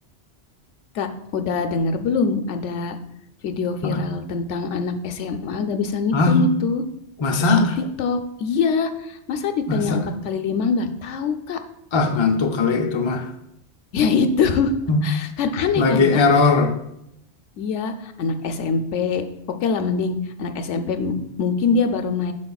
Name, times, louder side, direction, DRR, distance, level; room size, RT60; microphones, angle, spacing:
voice 1, 1.3-3.0 3.4-6.8 8.0-11.6 13.9-14.7 15.0-16.2 17.6-19.2 19.6-22.3, left 5 dB, 85° left, 8 dB, 0.9 m, -23 dB
voice 2, 7.2-7.8 9.7-10.1 11.9-13.3 14.9-15.0 15.7-16.7, left 4 dB, 35° left, 5 dB, 0.5 m, -19 dB
9.6 x 6.2 x 2.3 m, 0.79 s
omnidirectional pair, 1.2 m